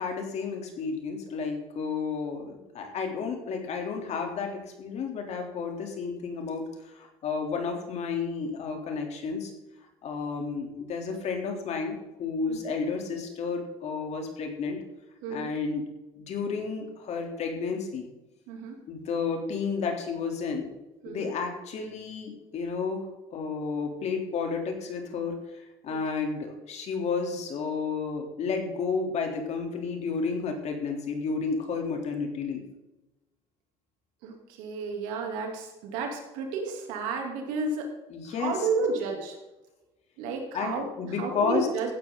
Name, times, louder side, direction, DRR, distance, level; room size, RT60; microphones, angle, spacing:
voice 1, 0.0-9.5 10.0-14.8 15.3-15.9 16.2-18.1 18.9-20.7 21.1-25.4 25.8-32.6 38.1-38.7 40.5-41.7, left 5 dB, 60° left, 3 dB, 3.4 m, -32 dB
voice 2, 18.5-18.8 21.0-21.3 25.9-26.0 34.2-37.9 38.3-39.4 40.2-41.9, right 4 dB, 85° right, 2 dB, 3.2 m, -32 dB
16.0 x 10.0 x 4.0 m, 1.0 s
supercardioid pair, 85°, 13 cm